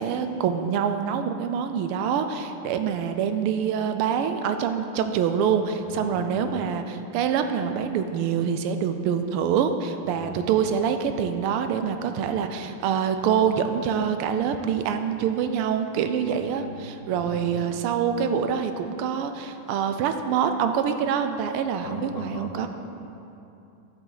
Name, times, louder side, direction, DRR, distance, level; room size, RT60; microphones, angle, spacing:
voice 1, 0.0-22.7, right 7 dB, 85° right, 8 dB, 1.5 m, -25 dB
voice 2, 5.8-6.7 10.0-10.5 12.4-12.5 16.2-17.7 21.8-22.7, left 3 dB, 65° left, 0 dB, 1.4 m, -39 dB
10.0 x 7.2 x 4.0 m, 2.7 s
omnidirectional pair, 2.4 m